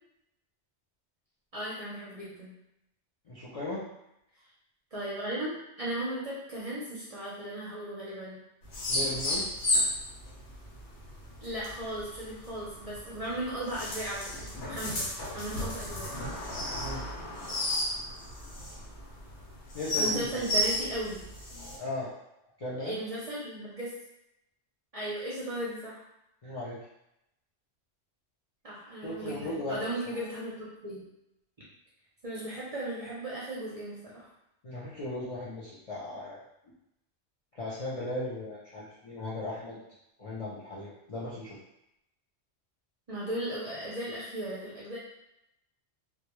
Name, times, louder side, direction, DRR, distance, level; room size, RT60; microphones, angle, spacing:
voice 1, 1.5-2.5 4.9-8.4 11.4-15.1 15.3-16.1 20.0-21.2 22.8-23.9 24.9-26.0 28.6-31.0 32.2-34.3 43.1-45.0, right 1 dB, 45° right, -7 dB, 0.5 m, -36 dB
voice 2, 3.3-3.8 8.9-9.5 16.7-17.1 19.7-20.4 21.8-22.1 22.6-22.9 26.4-26.8 29.0-30.2 34.6-36.4 37.5-39.8 40.2-41.6, left 2 dB, 50° left, -9 dB, 0.4 m, -37 dB
sound 1, 8.6-21.8, left 1 dB, 85° left, 1.0 m, -33 dB
2.2 x 2.1 x 2.9 m, 0.85 s
omnidirectional pair, 1.2 m